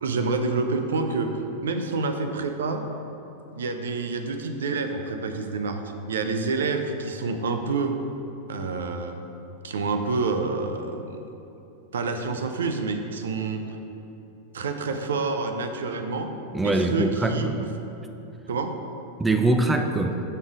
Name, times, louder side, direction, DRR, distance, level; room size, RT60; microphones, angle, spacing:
voice 1, 0.0-2.8 3.5-5.8 6.1-8.0 8.5-9.2 9.6-11.2 11.9-13.8 14.5-16.3 16.6-17.7 18.5-18.8, right 4 dB, 65° right, 6 dB, 0.5 m, -28 dB
voice 2, 16.5-17.6 19.2-20.2, right 2 dB, 10° right, 5 dB, 0.4 m, -23 dB
6.6 x 5.3 x 4.8 m, 3.0 s
figure-of-eight pair, 90°, 0 cm